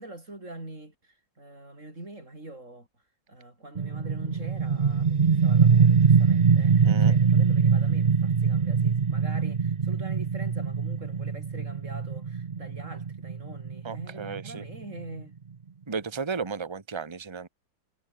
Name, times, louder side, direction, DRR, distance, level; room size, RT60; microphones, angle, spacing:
voice 1, 0.0-2.9 3.3-15.4, right 2 dB, 40° right, 7.4 m, -44 dB
sound 1, 3.7-15.2, right 6 dB, 60° right, 0.4 m, -23 dB
voice 2, 13.8-14.6 15.9-17.5, right 5 dB, 15° right, 1.3 m, -34 dB
omnidirectional pair, 2.0 m